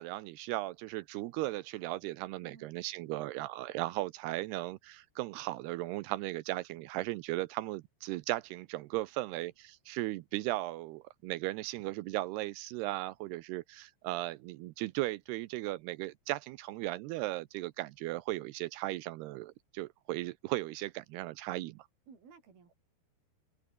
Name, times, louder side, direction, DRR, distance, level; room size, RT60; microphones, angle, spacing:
voice 1, 0.0-21.9, right 18 dB, 85° right, 2.7 m, -37 dB
voice 2, 2.4-2.8 22.1-22.8, right 6 dB, 65° right, 6.7 m, -56 dB
omnidirectional pair, 4.8 m